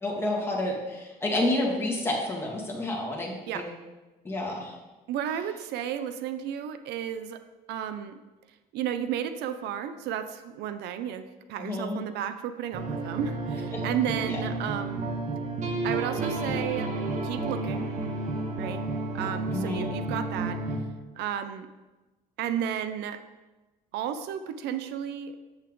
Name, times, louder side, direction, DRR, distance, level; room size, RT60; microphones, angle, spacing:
voice 1, 0.0-3.7 4.2-4.7 11.6-12.0 13.7-13.8 14.2-14.4 19.5-19.9, left 1 dB, 15° left, -3 dB, 2.2 m, -29 dB
voice 2, 5.1-7.4 7.7-8.2 8.7-15.1 15.8-16.9 17.2-17.9 18.6-18.8 19.1-20.6 21.2-21.7 22.4-23.2 23.9-25.4, right 9 dB, 80° right, 10 dB, 0.6 m, -33 dB
sound 1, 12.7-20.8, right 2 dB, 45° right, 1.4 m, -31 dB
8.0 x 7.3 x 3.8 m, 1.2 s
cardioid pair, 110°, 17 cm